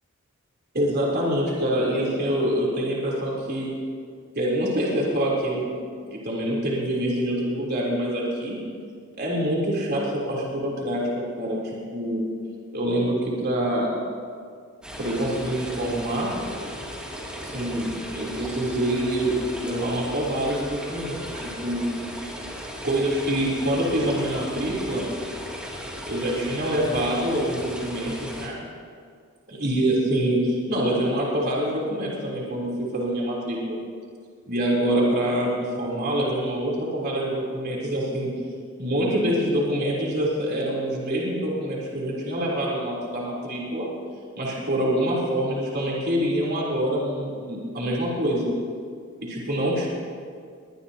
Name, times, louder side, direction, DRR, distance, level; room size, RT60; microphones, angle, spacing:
voice 1, 0.7-3.7 4.3-5.7 6.1-8.6 9.2-12.2 12.7-13.9 15.0-16.3 17.4-21.8 22.2-22.3 22.8-25.0 26.1-28.5 29.5-33.8 34.5-38.3 38.8-43.9 44.4-48.5 49.2-49.9, right 1 dB, 50° right, -4 dB, 3.5 m, -25 dB
sound 1, 14.8-28.5, equal, 5° right, 2.6 m, -36 dB
21.5 x 19.5 x 2.9 m, 2.1 s
head